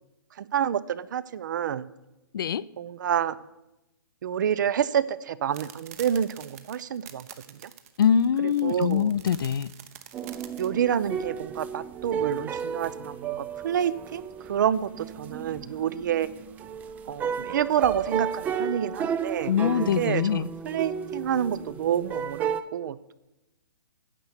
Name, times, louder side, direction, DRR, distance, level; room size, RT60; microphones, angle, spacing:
voice 1, 0.4-1.9 2.8-3.4 4.2-7.7 8.6-9.1 10.6-16.3 17.1-19.5 19.8-23.1, right 9 dB, 55° right, 18 dB, 0.6 m, -28 dB
voice 2, 2.3-2.7 8.0-9.7 19.5-20.5, left 8 dB, 70° left, 19 dB, 0.5 m, -23 dB
sound 1, 5.5-10.7, right 10 dB, 40° right, 1.0 m, -46 dB
sound 2, 10.1-22.6, right 7 dB, 15° right, 0.4 m, -33 dB
9.9 x 7.0 x 8.1 m, 0.95 s
hypercardioid pair, 145°, 12 cm